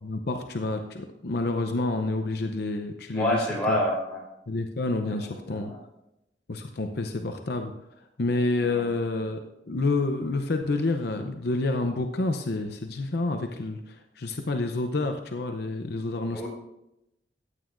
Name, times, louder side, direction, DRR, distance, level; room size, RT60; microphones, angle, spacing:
voice 1, 0.0-3.8 4.5-5.7 6.5-7.7 8.2-9.4 9.7-16.5, left 2 dB, 65° left, 5 dB, 0.7 m, -29 dB
voice 2, 3.1-4.2 5.1-5.8 8.6-8.8 16.3-16.5, left 1 dB, 5° left, -4 dB, 4.3 m, -28 dB
14.5 x 9.2 x 2.6 m, 0.86 s
head